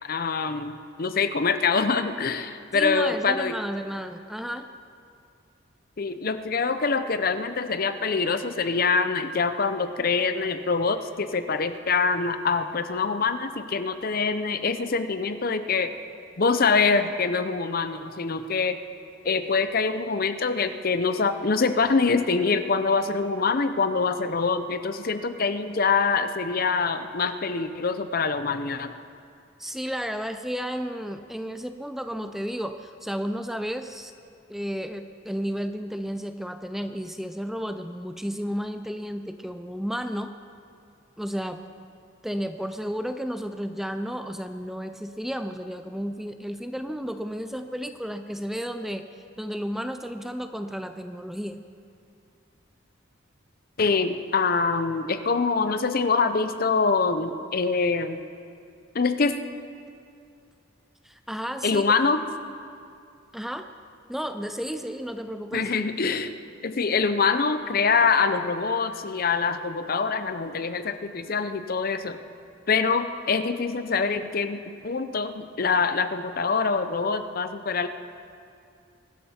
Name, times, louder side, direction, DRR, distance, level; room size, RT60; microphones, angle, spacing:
voice 1, 0.0-3.6 6.0-15.9 16.4-18.8 19.2-28.9 53.8-58.2 58.9-59.4 61.6-62.2 65.5-66.3 66.6-72.2 72.7-77.9, left 4 dB, 45° left, 10 dB, 0.6 m, -25 dB
voice 2, 2.7-4.7 29.6-34.1 34.5-40.3 41.2-41.6 42.2-49.0 49.4-51.6 61.0-61.8 63.3-63.7 64.1-65.7, equal, ahead, 8 dB, 0.4 m, -32 dB
23.5 x 12.5 x 4.4 m, 2.4 s
head